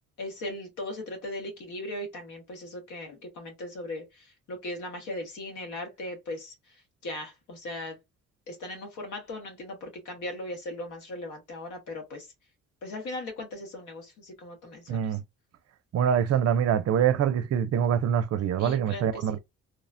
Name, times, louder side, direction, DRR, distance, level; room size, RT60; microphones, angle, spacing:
voice 1, 0.2-6.5 7.0-8.0 8.5-12.3 12.8-15.0 18.6-19.2, left 1 dB, 80° left, 1.2 m, -38 dB
voice 2, 14.9-15.2 15.9-19.4, right 8 dB, 55° right, 0.5 m, -25 dB
3.0 x 2.1 x 2.5 m
cardioid pair, 90°, 30 cm